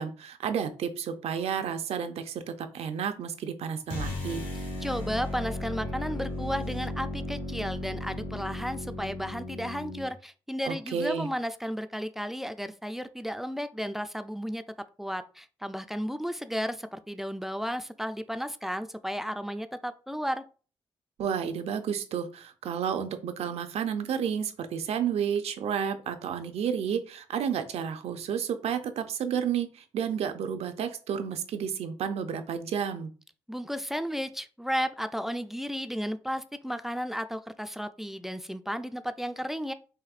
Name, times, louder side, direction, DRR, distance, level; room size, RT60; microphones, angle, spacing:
voice 1, 0.0-4.4 10.7-11.3 21.2-33.1, right 7 dB, 80° right, 8 dB, 0.5 m, -31 dB
sound 1, 3.9-10.1, left 2 dB, 65° left, 1.5 m, -35 dB
voice 2, 4.8-14.6 15.0-20.4 33.5-39.7, equal, 5° right, 10 dB, 0.3 m, -33 dB
4.9 x 2.6 x 2.4 m, 0.37 s
cardioid pair, 60°, 11 cm